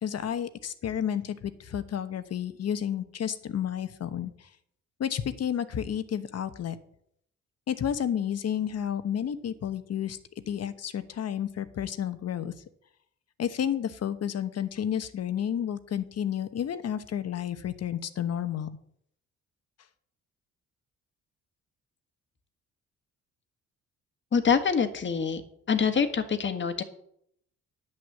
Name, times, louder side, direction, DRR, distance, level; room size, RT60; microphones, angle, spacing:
voice 1, 0.0-4.5 5.0-6.8 7.7-10.2 10.5-12.5 13.4-18.7, left 9 dB, 55° left, 11 dB, 1.1 m, -31 dB
voice 2, 24.3-25.4 25.7-26.8, left 6 dB, 40° left, 8 dB, 1.5 m, -25 dB
10.0 x 6.5 x 7.3 m, 0.70 s
cardioid pair, 90°, 30 cm